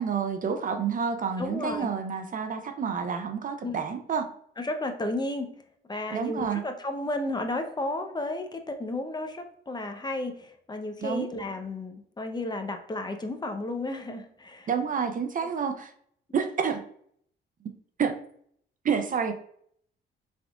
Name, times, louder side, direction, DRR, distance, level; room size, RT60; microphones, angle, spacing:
voice 1, 0.0-4.2 6.1-6.6 11.0-11.3 14.7-15.9 16.3-16.8 18.0-18.2 18.8-19.3, right 6 dB, 40° right, 7 dB, 0.5 m, -29 dB
voice 2, 1.4-1.9 3.6-3.8 4.6-5.5 5.9-14.7, left 2 dB, 20° left, 6 dB, 0.7 m, -33 dB
5.8 x 3.6 x 2.3 m, 0.65 s
cardioid pair, 90°, 20 cm